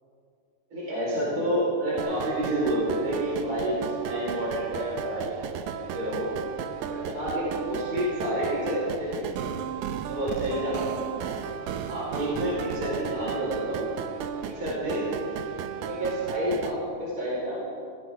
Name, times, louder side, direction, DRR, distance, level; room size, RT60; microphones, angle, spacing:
voice 1, 0.7-6.3 6.9-9.3 10.1-11.3 11.9-13.9 14.4-15.1 15.7-17.6, right 1 dB, 25° right, -8 dB, 4.6 m, -29 dB
sound 1, 2.0-16.7, right 8 dB, 75° right, 1.9 m, -35 dB
19.0 x 15.5 x 3.6 m, 2.5 s
omnidirectional pair, 3.9 m